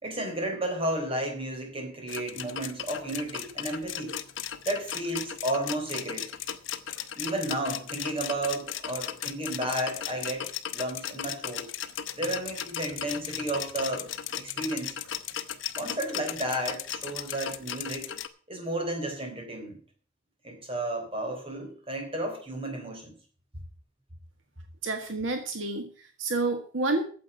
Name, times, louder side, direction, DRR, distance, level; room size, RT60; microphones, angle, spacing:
voice 1, 0.0-4.2 4.6-6.3 7.2-11.7 12.2-14.1 14.4-15.0 15.8-18.1 18.5-19.8 20.4-23.2, right 1 dB, 30° right, 3 dB, 3.8 m, -32 dB
sound 1, 2.1-18.3, left 9 dB, 75° left, 1.0 m, -36 dB
voice 2, 24.8-27.0, right 3 dB, 75° right, 6 dB, 1.6 m, -29 dB
9.4 x 7.7 x 8.1 m, 0.43 s
head